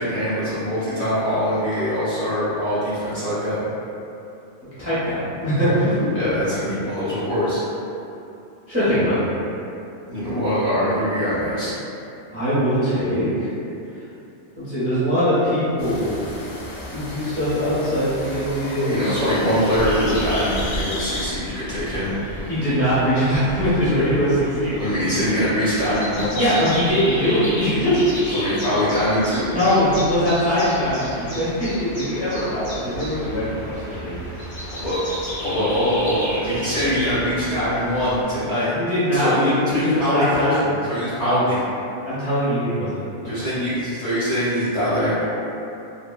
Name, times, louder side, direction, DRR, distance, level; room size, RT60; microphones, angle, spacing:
voice 1, 0.0-3.6 6.1-7.6 10.1-11.7 18.8-22.1 24.8-26.4 28.3-29.5 34.7-35.0 35.4-38.7 39.1-40.6 40.9-41.6 43.2-45.2, equal, 35° left, -13 dB, 0.9 m, -23 dB
voice 2, 4.8-6.0 8.7-9.2 12.3-13.5 14.6-16.1 16.9-19.0 19.4-19.6 22.5-24.8 26.3-28.0 29.5-34.6 38.7-40.7 41.2-41.6 42.0-43.3, equal, 15° right, -13 dB, 0.7 m, -22 dB
sound 1, 15.8-21.3, left 1 dB, 80° left, 0.9 m, -34 dB
sound 2, 19.7-38.2, equal, 60° left, 1.5 m, -33 dB
3.5 x 2.1 x 2.3 m, 2.7 s
omnidirectional pair, 1.2 m